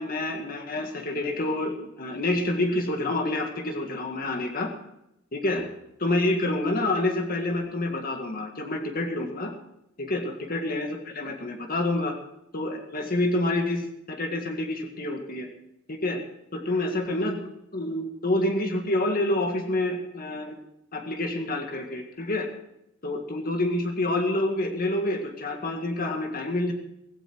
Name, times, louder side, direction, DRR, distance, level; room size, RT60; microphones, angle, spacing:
voice 1, 0.0-4.7 5.3-5.6 6.0-9.5 10.0-12.2 12.5-15.5 15.9-16.2 16.5-17.5 17.7-20.6 20.9-22.5 23.0-26.7, left 1 dB, 45° left, 3 dB, 1.8 m, -28 dB
16.5 x 16.0 x 4.6 m, 0.81 s
head